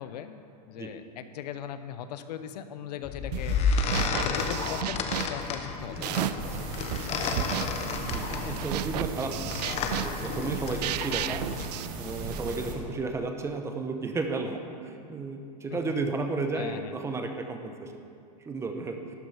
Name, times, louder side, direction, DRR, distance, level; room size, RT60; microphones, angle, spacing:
voice 1, 0.0-3.6 4.2-6.1 7.2-7.5 15.7-15.9 16.5-17.0, left 9 dB, 75° left, 10 dB, 0.8 m, -39 dB
sound 1, 3.0-11.7, left 4 dB, 30° left, 0.9 m, -32 dB
sound 2, 3.3-3.6 3.9-6.6 6.9-12.6, right 13 dB, 75° right, 0.4 m, -34 dB
voice 2, 5.9-6.7 8.0-9.5 10.0-11.4 11.9-17.9 18.4-19.0, right 3 dB, 15° right, 5 dB, 0.8 m, -33 dB
sound 3, 6.4-12.7, right 3 dB, 45° right, 1.6 m, -37 dB
12.0 x 7.8 x 5.6 m, 2.5 s
supercardioid pair, 140°, 21 cm